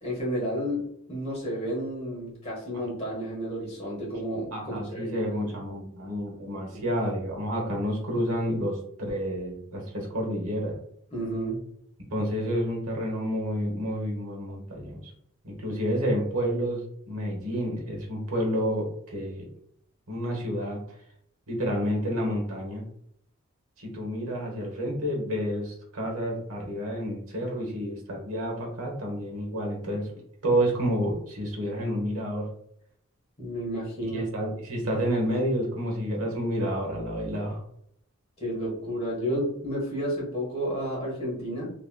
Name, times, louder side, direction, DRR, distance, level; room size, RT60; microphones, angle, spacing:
voice 1, 0.0-5.5 6.7-6.9 11.1-11.6 33.4-34.2 38.4-41.7, equal, 30° left, -4 dB, 1.2 m, -31 dB
voice 2, 4.5-10.8 12.1-15.1 15.4-19.5 20.1-20.8 21.5-22.8 23.8-30.1 30.4-32.5 34.1-37.6, equal, 75° right, 0 dB, 1.1 m, -29 dB
2.9 x 2.8 x 2.2 m, 0.71 s
head